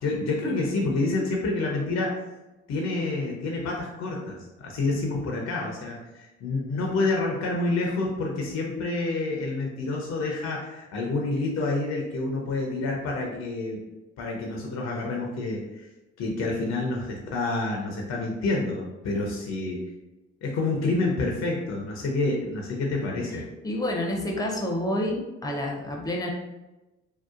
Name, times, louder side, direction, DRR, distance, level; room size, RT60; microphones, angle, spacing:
voice 1, 0.0-2.2 2.7-13.8 14.2-15.9 16.2-19.8 20.4-23.5, left 2 dB, 55° left, 0 dB, 0.6 m, -28 dB
voice 2, 23.6-26.3, left 1 dB, 10° left, 0 dB, 0.6 m, -28 dB
2.7 x 2.1 x 2.4 m, 1.0 s
hypercardioid pair, 55°, 32 cm